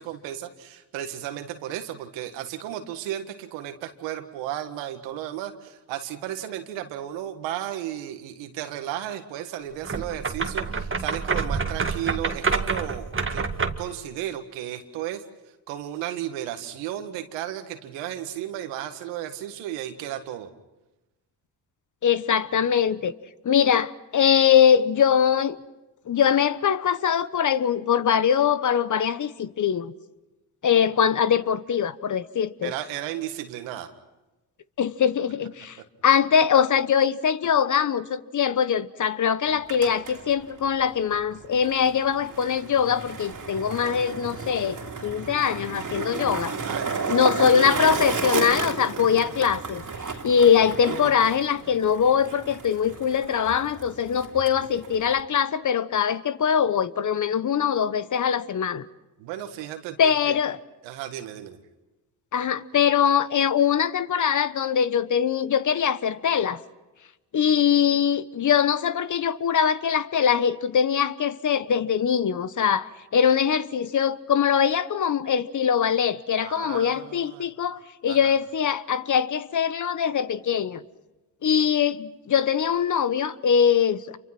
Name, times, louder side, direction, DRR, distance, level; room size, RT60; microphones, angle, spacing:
voice 1, 0.0-13.5 13.8-15.2 15.7-20.5 32.6-33.9 46.6-47.3 59.2-60.3 60.8-61.6 76.4-77.5 78.1-78.3, right 11 dB, 85° right, 1.9 m, -34 dB
sound 1, 9.8-13.9, right 4 dB, 30° right, 1.9 m, -27 dB
voice 2, 22.0-23.1 23.4-25.6 26.1-29.9 30.6-32.7 34.8-35.8 36.0-46.5 47.1-49.8 50.2-58.9 60.0-60.6 62.3-66.6 67.3-80.8 81.4-84.2, left 8 dB, 45° left, 1.1 m, -22 dB
Skateboard, 39.5-55.2, right 4 dB, 45° right, 2.9 m, -33 dB
28.0 x 24.0 x 6.0 m
supercardioid pair, 65°, 43 cm